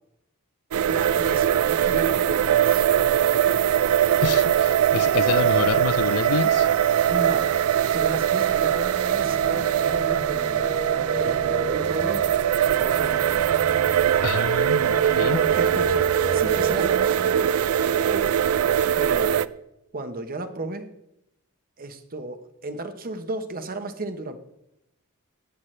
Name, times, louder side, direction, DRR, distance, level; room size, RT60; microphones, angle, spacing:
sound 1, 0.7-19.5, right 10 dB, 75° right, 0.4 m, -21 dB
voice 1, 0.8-2.8 7.1-7.5 7.9-10.7 11.2-12.3 12.7-13.5 15.3-17.6 17.9-18.4 19.0-19.5 19.9-20.9 21.8-24.4, right 2 dB, 40° right, 1.0 m, -33 dB
voice 2, 4.2-6.7 14.2-15.4, left 6 dB, 80° left, 0.5 m, -27 dB
sound 2, 9.1-16.9, equal, 25° right, 1.5 m, -35 dB
15.0 x 10.5 x 3.3 m
head